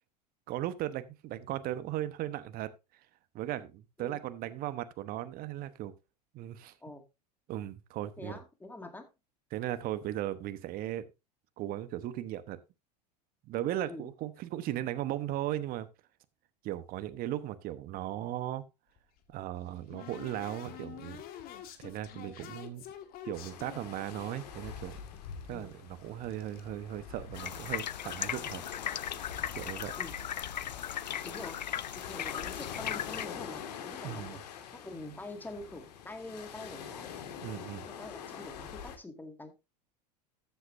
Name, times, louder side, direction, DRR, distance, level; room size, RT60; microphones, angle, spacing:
voice 1, 0.5-2.7 3.3-5.9 6.3-6.7 7.5-8.4 9.5-11.1 11.6-12.6 13.5-15.9 16.6-18.6 19.3-21.2 21.8-22.8 23.2-25.0 25.5-28.6 29.5-29.9 34.0-34.4 37.4-37.9, right 13 dB, 45° right, 1.1 m, -37 dB
voice 2, 8.2-9.1 13.9-14.1 25.5-25.7 30.0-30.2 31.2-31.6 32.0-37.1 37.8-39.5, left 2 dB, 10° left, 2.1 m, -45 dB
sound 1, 19.0-24.4 24.9-26.7 26.9-27.7 28.0-29.3 29.6-29.7 30.0-30.2 30.5-30.6 31.4-31.5 31.8-32.0 32.6-32.9, left 10 dB, 45° left, 1.8 m, -49 dB
sound 2, 23.3-39.0, left 8 dB, 70° left, 2.1 m, -45 dB
sound 3, 27.3-33.3, left 10 dB, 85° left, 0.5 m, -37 dB
13.5 x 8.1 x 2.7 m
hypercardioid pair, 85°, 21 cm